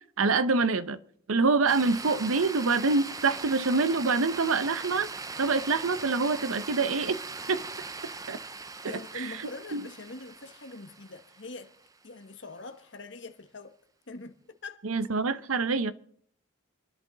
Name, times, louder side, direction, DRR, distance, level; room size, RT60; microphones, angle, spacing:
voice 1, 0.2-1.0 1.3-5.1 5.4-7.2 7.5-7.6 8.3-8.4 9.1-9.3 9.7-9.8 14.8-15.9, right 4 dB, 90° right, 0.8 m, -25 dB
sound 1, 1.7-12.0, right 4 dB, 15° right, 0.5 m, -40 dB
voice 2, 8.8-11.7 12.0-13.8 14.1-14.8, left 3 dB, 60° left, 1.2 m, -43 dB
28.5 x 10.5 x 4.0 m
head